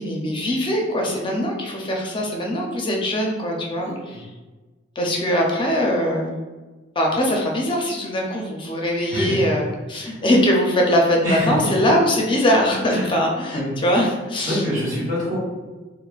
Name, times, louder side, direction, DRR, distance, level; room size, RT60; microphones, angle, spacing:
voice 1, 0.0-4.3 5.0-6.3 7.0-14.6, equal, 25° left, 0 dB, 0.5 m, -21 dB
voice 2, 3.8-4.2 9.1-9.5 10.0-10.2 11.2-11.7 12.9-13.1 13.5-13.7 14.4-15.4, equal, 40° right, -8 dB, 1.4 m, -26 dB
4.0 x 2.0 x 2.4 m, 1.3 s
head